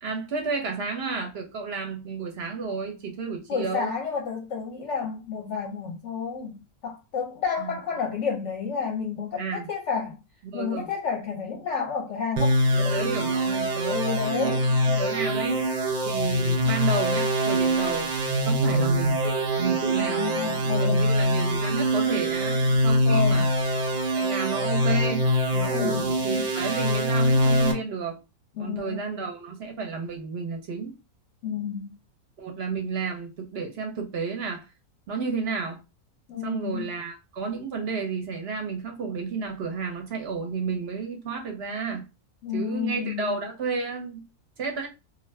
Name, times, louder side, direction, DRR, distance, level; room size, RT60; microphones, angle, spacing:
voice 1, 0.0-3.9 7.6-7.8 9.4-9.7 10.4-10.9 12.7-15.6 16.1-18.1 18.4-23.5 24.1-25.2 25.5-28.2 28.6-30.9 32.4-34.7 35.1-35.8 36.4-42.1 42.5-44.2 44.6-44.9, right 5 dB, 55° right, 0.7 m, -32 dB
voice 2, 3.5-10.2 10.5-12.5 12.8-13.1 13.9-14.6 18.5-18.6 19.9-21.0 23.1-23.5 25.7-26.1 28.6-29.3 31.4-31.9 36.3-36.9 42.4-43.4, left 6 dB, 65° left, 0.8 m, -30 dB
sound 1, 12.4-27.7, equal, 80° right, 0.3 m, -24 dB
2.5 x 2.5 x 3.1 m
omnidirectional pair, 1.6 m